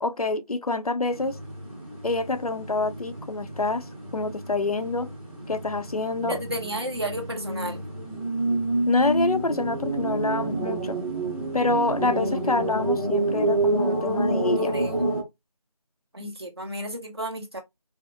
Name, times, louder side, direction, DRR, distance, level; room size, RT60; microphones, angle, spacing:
voice 1, 0.0-1.4 2.0-5.1 5.5-6.4 8.9-11.0 11.5-14.7, left 3 dB, 70° left, 0.6 m, -27 dB
sound 1, 1.1-15.2, right 2 dB, 15° right, 1.2 m, -28 dB
voice 2, 6.3-7.8 14.6-14.9 16.1-17.6, right 1 dB, 40° right, 1.0 m, -32 dB
4.9 x 2.0 x 2.6 m
figure-of-eight pair, 175°, 20 cm